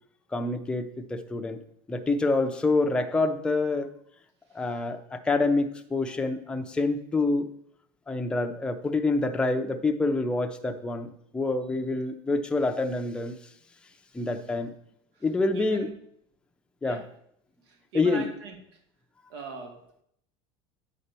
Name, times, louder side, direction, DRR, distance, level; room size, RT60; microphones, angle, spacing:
voice 1, 0.3-1.6 1.9-3.9 4.5-7.5 8.1-11.1 11.3-13.3 14.1-14.7 15.2-15.9 16.8-17.0 17.9-18.3, left 3 dB, 5° left, 4 dB, 0.5 m, -27 dB
voice 2, 15.5-15.9 16.9-17.0 17.7-18.6 19.3-20.0, right 3 dB, 90° right, 4 dB, 2.1 m, -40 dB
8.9 x 4.3 x 6.7 m, 0.71 s
cardioid pair, 160°, 14 cm